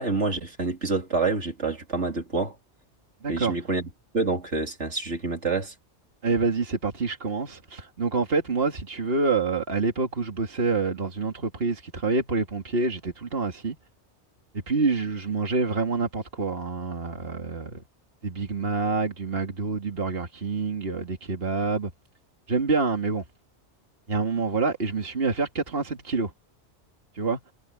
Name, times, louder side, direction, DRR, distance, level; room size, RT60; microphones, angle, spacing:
voice 1, 0.0-2.5 3.3-3.9 4.1-5.7, right 3 dB, 80° right, 3.5 m, -27 dB
voice 2, 3.2-3.6 6.2-13.8 14.5-17.8 18.2-21.9 22.5-23.3 24.1-26.3 27.1-27.4, right 4 dB, 55° right, 2.5 m, -27 dB
omnidirectional pair, 1.2 m